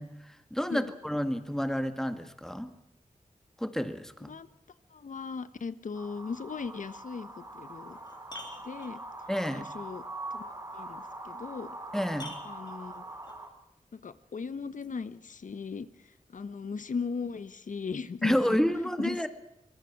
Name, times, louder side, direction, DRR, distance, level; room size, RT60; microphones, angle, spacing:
voice 1, 0.0-2.7 3.6-4.3 9.3-9.6 11.9-12.3 18.2-19.3, equal, 5° left, 8 dB, 1.9 m, -30 dB
voice 2, 4.9-8.0 8.6-9.0 9.5-10.0 10.3-11.7 12.4-13.0 13.9-15.9 16.3-18.6 19.0-19.3, left 5 dB, 75° left, 13 dB, 1.2 m, -37 dB
sound 1, 5.9-13.5, right 2 dB, 25° right, 3.7 m, -43 dB
sound 2, 7.2-7.3 7.8-9.3 11.3-11.4 12.1-13.4 14.8-14.9, left 1 dB, 35° left, 4.0 m, -47 dB
24.0 x 22.0 x 6.1 m, 0.83 s
wide cardioid pair, 105°, 13 cm